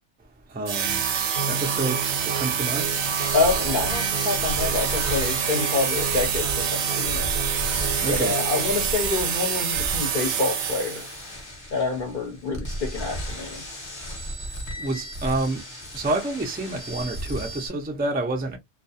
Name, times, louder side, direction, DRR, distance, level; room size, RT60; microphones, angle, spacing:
voice 1, 0.5-1.0 1.5-2.0 2.3-2.9 8.0-8.4 14.8-15.6 15.9-18.6, right 2 dB, 15° right, 0.4 m, -28 dB
sound 1, 0.7-11.2, right 8 dB, 90° right, 0.9 m, -26 dB
sound 2, 1.3-10.3, right 3 dB, 55° right, 0.8 m, -35 dB
sound 3, 2.8-17.7, equal, 25° left, 0.9 m, -35 dB
voice 2, 3.3-7.3 8.1-11.0 11.7-13.6, left 4 dB, 55° left, 0.8 m, -27 dB
2.3 x 2.2 x 2.6 m
omnidirectional pair, 1.1 m